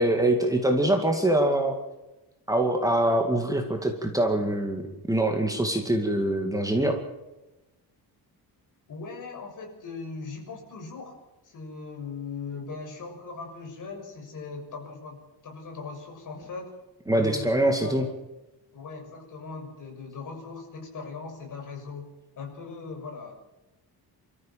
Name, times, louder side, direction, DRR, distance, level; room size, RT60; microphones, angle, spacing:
voice 1, 0.0-1.8 2.5-4.8 5.1-7.0 17.1-18.0, right 1 dB, 10° right, 3 dB, 2.2 m, -24 dB
voice 2, 8.9-11.2 11.4-16.7 17.1-18.1 18.7-22.1 22.4-23.3, left 4 dB, 50° left, 3 dB, 6.6 m, -39 dB
28.0 x 14.0 x 7.6 m, 1.0 s
cardioid pair, 180°, 40 cm